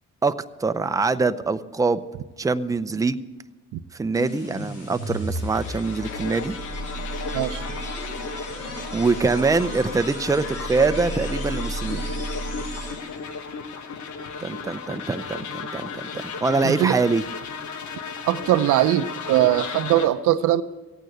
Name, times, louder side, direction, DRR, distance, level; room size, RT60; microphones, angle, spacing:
voice 1, 0.6-2.0 2.4-3.2 3.9-6.6 8.9-12.0 14.4-17.2, right 4 dB, 10° right, 10 dB, 0.5 m, -24 dB
sound 1, 4.1-13.3, right 1 dB, 55° left, 5.0 m, -33 dB
sound 2, 5.5-20.1, left 5 dB, 70° left, 1.3 m, -35 dB
voice 2, 18.3-20.6, right 13 dB, 85° right, 13 dB, 0.7 m, -21 dB
15.5 x 9.0 x 8.0 m, 1.2 s
cardioid pair, 90°, 30 cm